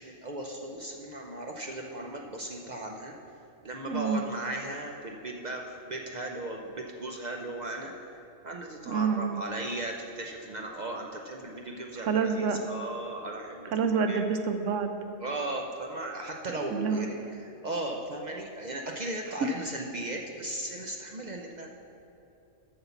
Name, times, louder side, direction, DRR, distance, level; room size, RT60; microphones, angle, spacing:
voice 1, 0.0-3.1 3.6-8.1 8.4-13.8 14.1-14.2 15.2-21.7, right 2 dB, 50° right, 1 dB, 0.5 m, -37 dB
voice 2, 3.9-4.3 8.9-9.4 12.0-12.6 13.7-14.9 16.7-17.1, right 5 dB, 70° right, 7 dB, 0.9 m, -27 dB
8.0 x 5.7 x 6.9 m, 2.9 s
omnidirectional pair, 1.4 m